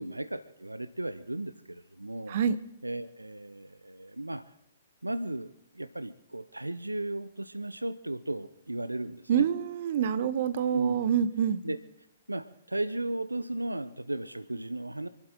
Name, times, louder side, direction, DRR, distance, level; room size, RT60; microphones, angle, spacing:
voice 1, 0.0-2.4 2.8-4.4 5.0-9.5 10.7-11.2 11.6-11.8 12.3-15.1, right 1 dB, 85° right, 14 dB, 0.6 m, -35 dB
voice 2, 9.3-11.6, right 8 dB, 45° right, 14 dB, 0.9 m, -26 dB
28.0 x 11.0 x 3.7 m, 0.76 s
figure-of-eight pair, 120°, 0 cm